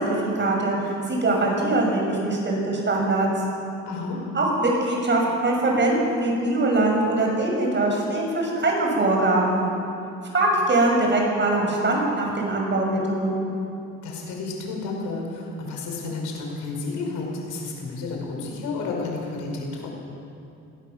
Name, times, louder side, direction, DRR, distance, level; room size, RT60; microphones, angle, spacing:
voice 1, 0.0-3.3 4.3-9.6 10.3-13.5, right 2 dB, 35° right, 0 dB, 7.0 m, -22 dB
voice 2, 3.9-4.2 14.0-19.9, left 3 dB, 90° left, 0 dB, 5.5 m, -31 dB
21.5 x 17.0 x 7.4 m, 2.6 s
cardioid pair, 90°, 30 cm